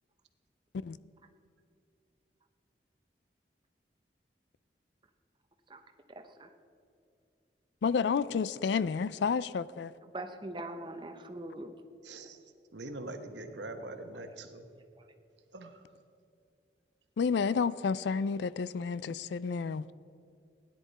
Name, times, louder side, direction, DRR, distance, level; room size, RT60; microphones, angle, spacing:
voice 1, 7.8-9.9 17.2-19.9, left 5 dB, 75° left, 18 dB, 0.4 m, -30 dB
voice 2, 10.0-11.8 15.0-15.1, right 1 dB, 25° right, 6 dB, 0.8 m, -42 dB
voice 3, 12.1-12.4 12.7-14.7 15.5-15.7, right 2 dB, 80° right, 7 dB, 1.1 m, -43 dB
16.5 x 10.5 x 4.1 m, 2.5 s
head